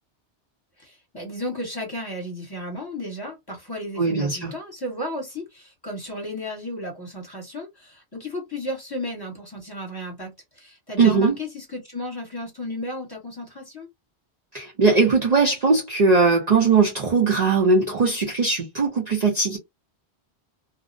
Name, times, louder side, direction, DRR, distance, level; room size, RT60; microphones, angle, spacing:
voice 1, 0.8-13.9, left 1 dB, 25° left, 1.0 m, -34 dB
voice 2, 4.0-4.5 11.0-11.4 14.5-19.6, right 4 dB, 50° right, 0.6 m, -19 dB
2.5 x 2.0 x 2.5 m
omnidirectional pair, 1.1 m